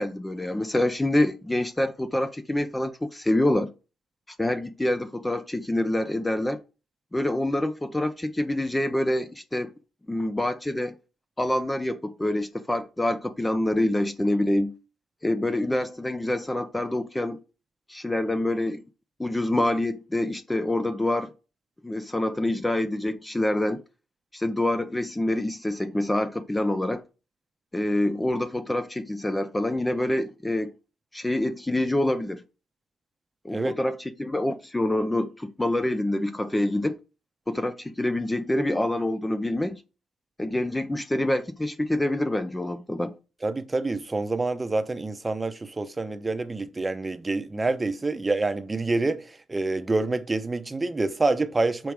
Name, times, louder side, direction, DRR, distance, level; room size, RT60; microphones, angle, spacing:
voice 1, 0.0-3.7 4.3-6.6 7.1-9.7 10.1-11.0 11.4-14.7 15.2-17.4 17.9-18.8 19.2-21.3 21.8-23.8 24.3-27.0 27.7-30.7 31.1-32.4 33.4-37.0 37.5-39.8 40.4-43.1, left 1 dB, 10° left, 0.5 m, -26 dB
voice 2, 43.4-49.2 49.5-51.9, right 3 dB, 20° right, 0.8 m, -27 dB
6.0 x 5.1 x 4.6 m
cardioid pair, 90°, 0 cm